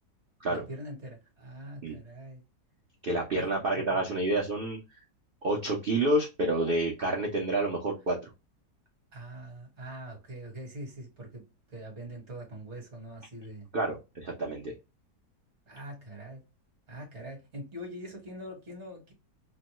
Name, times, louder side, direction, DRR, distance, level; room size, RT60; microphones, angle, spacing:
voice 1, 0.5-2.4 3.4-3.8 9.1-11.4 11.7-13.7 15.7-16.4 16.9-19.1, right 1 dB, 45° right, 1.5 m, -43 dB
voice 2, 3.0-4.8 5.4-8.2 13.7-14.7, right 2 dB, 70° right, 0.5 m, -28 dB
3.1 x 2.1 x 2.9 m
omnidirectional pair, 1.9 m